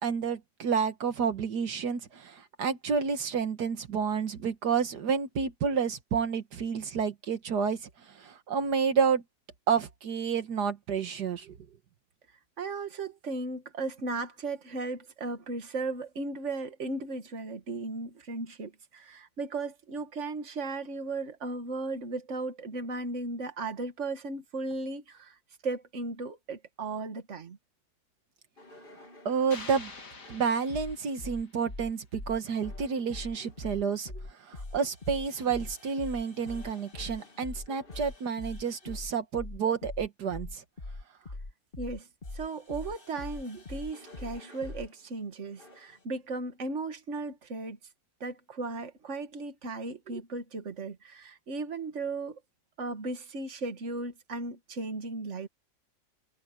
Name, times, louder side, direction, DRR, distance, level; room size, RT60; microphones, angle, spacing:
voice 1, 0.0-9.2 9.7-11.6 29.3-29.9 30.3-34.1 34.4-40.6, right 6 dB, 75° right, 1.9 m, -30 dB
voice 2, 12.6-25.4 25.6-27.6 41.8-42.1 42.3-47.8 48.2-52.4 52.8-55.5, right 3 dB, 45° right, 2.0 m, -36 dB
sound 1, 28.6-29.6 30.2-44.9 45.6-46.0, left 2 dB, 35° left, 2.2 m, -43 dB
sound 2, 29.5-31.7, left 3 dB, 55° left, 3.0 m, -46 dB
omnidirectional pair, 1.7 m